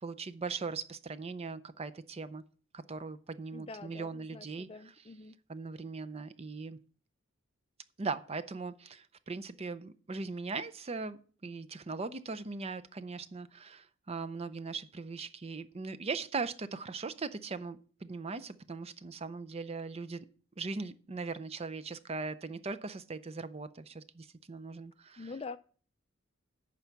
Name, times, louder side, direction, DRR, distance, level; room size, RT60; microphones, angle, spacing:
voice 1, 0.0-2.4 2.7-4.7 5.5-6.8 8.0-20.2 20.6-25.3, right 4 dB, 30° right, 0.5 m, -39 dB
voice 2, 3.5-5.3 25.2-25.6, left 4 dB, 30° left, 0.5 m, -45 dB
11.0 x 4.6 x 7.1 m
head